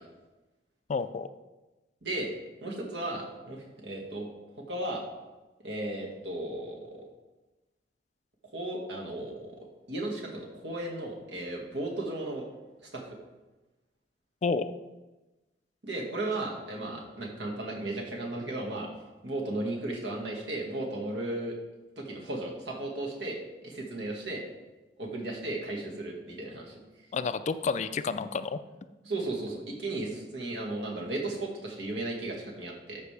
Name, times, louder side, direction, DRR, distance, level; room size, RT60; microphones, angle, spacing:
voice 1, 0.9-1.3 14.4-14.7 27.1-28.6, left 4 dB, 40° left, 12 dB, 0.4 m, -30 dB
voice 2, 2.6-4.3 4.6-5.0 5.6-7.0 8.4-9.6 9.9-12.4 12.9-13.2 15.8-18.9 19.2-21.6 22.0-24.4 25.0-26.8 29.0-33.0, right 2 dB, 75° right, -1 dB, 1.8 m, -35 dB
13.0 x 5.3 x 3.4 m, 1.1 s
head